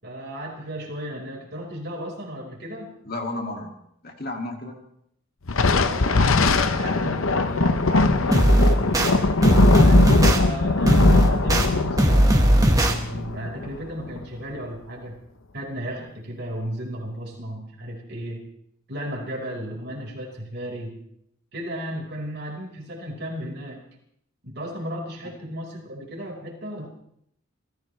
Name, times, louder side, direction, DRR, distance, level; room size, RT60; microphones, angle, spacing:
voice 1, 0.0-2.9 5.7-9.4 9.7-15.2 15.5-18.5 18.9-21.0 21.5-23.8 24.4-26.9, equal, 50° right, 0 dB, 4.9 m, -34 dB
voice 2, 3.0-3.8 4.0-4.8, left 2 dB, 45° left, 2 dB, 2.4 m, -32 dB
Thunder, 5.5-14.2, left 3 dB, 75° left, 0.9 m, -21 dB
sound 1, 8.3-9.1 9.4-10.4 10.8-11.7 12.0-12.9, right 1 dB, 15° right, 1.6 m, -17 dB
28.5 x 15.5 x 3.3 m, 0.72 s
head